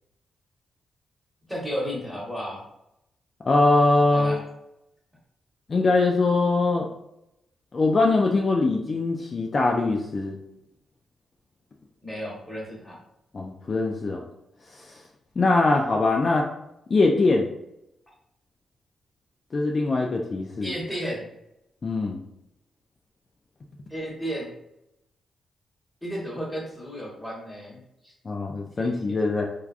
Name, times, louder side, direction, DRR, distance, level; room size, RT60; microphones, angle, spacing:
voice 1, 1.5-2.6 4.1-4.4 12.0-13.0 20.6-21.3 23.9-24.5 26.0-28.1 28.8-29.2, equal, 5° left, -3 dB, 1.2 m, -33 dB
voice 2, 3.4-4.4 5.7-6.9 7.7-10.4 13.3-14.3 14.8-14.9 15.4-16.5 16.9-17.5 19.5-20.7 21.8-22.2 28.3-29.5, left 3 dB, 45° left, 1 dB, 0.3 m, -22 dB
3.3 x 2.3 x 2.4 m, 0.83 s
cardioid pair, 70°, 0 cm